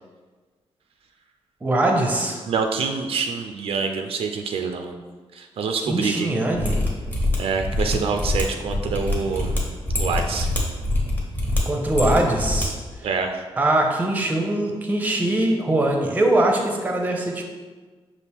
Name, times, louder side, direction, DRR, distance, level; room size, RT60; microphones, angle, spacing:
voice 1, 1.6-2.4 5.9-6.8 11.7-12.7 13.6-17.4, right 1 dB, 15° right, 1 dB, 0.6 m, -22 dB
voice 2, 2.5-5.0 5.3-6.3 7.3-9.6 10.0-10.5 13.0-13.4, right 5 dB, 70° right, 5 dB, 0.4 m, -26 dB
Mechanisms, 6.5-12.7 12.9-13.0, left 1 dB, 15° left, 0.9 m, -25 dB
5.8 x 2.5 x 3.4 m, 1.4 s
wide cardioid pair, 140°, 10 cm